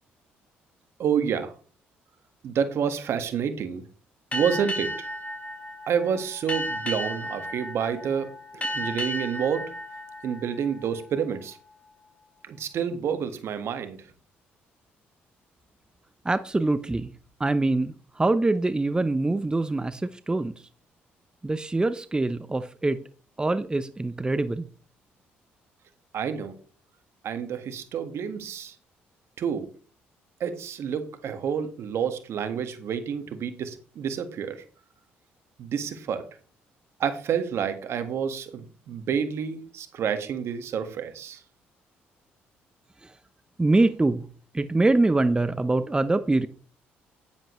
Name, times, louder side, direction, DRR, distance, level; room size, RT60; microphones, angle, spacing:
voice 1, 1.0-1.5 2.4-3.8 4.3-5.1 5.9-8.3 8.5-9.7 10.2-11.6 12.5-14.0 26.1-26.5 27.2-28.7 29.4-29.7 30.4-34.6 35.6-36.2 37.0-41.4, right 7 dB, 65° right, 9 dB, 1.7 m, -29 dB
Boat Water vehicle, 4.3-11.4, equal, 30° left, 4.7 m, -34 dB
voice 2, 16.2-17.1 17.4-20.5 21.4-23.0 23.4-24.7 43.0-43.1 43.6-44.3 44.5-46.5, right 2 dB, 15° right, 13 dB, 0.8 m, -24 dB
10.5 x 10.0 x 3.2 m, 0.39 s
supercardioid pair, 60°, 5 cm